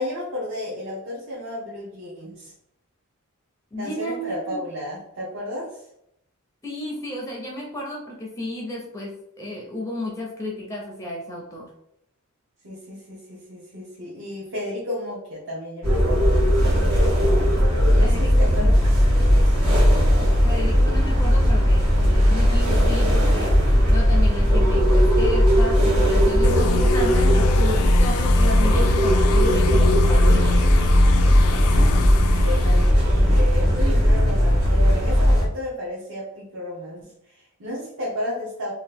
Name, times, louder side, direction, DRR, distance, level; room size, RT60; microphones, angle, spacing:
voice 1, 0.0-2.5 3.8-5.9 12.6-16.5 17.9-18.7 19.3-19.6 31.6-38.7, left 1 dB, 60° right, -6 dB, 0.8 m, -33 dB
voice 2, 3.7-4.6 6.6-11.7 18.0-18.9 20.2-23.6 23.9-30.6, left 1 dB, 15° left, -1 dB, 0.4 m, -33 dB
sound 1, 15.8-35.5, equal, 75° right, 1.1 m, -17 dB
sound 2, 26.4-32.9, left 6 dB, 75° left, 0.3 m, -27 dB
2.9 x 2.4 x 3.4 m, 0.78 s
head